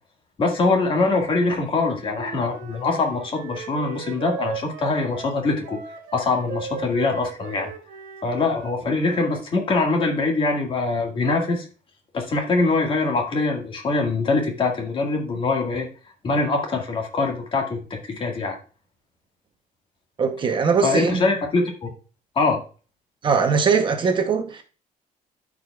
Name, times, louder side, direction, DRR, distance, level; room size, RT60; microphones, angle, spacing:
voice 1, 0.4-5.8 6.1-7.7 8.2-11.7 12.1-15.9 16.2-18.6 20.8-21.9 22.4-22.6, left 3 dB, 35° left, 1.9 m, -23 dB
Wind instrument woodwind instrument, 2.0-9.5, right 8 dB, 75° right, 1.4 m, -38 dB
voice 2, 20.2-21.2 23.2-24.6, right 5 dB, 35° right, 0.8 m, -21 dB
13.5 x 4.9 x 2.4 m
cardioid pair, 155°, 15 cm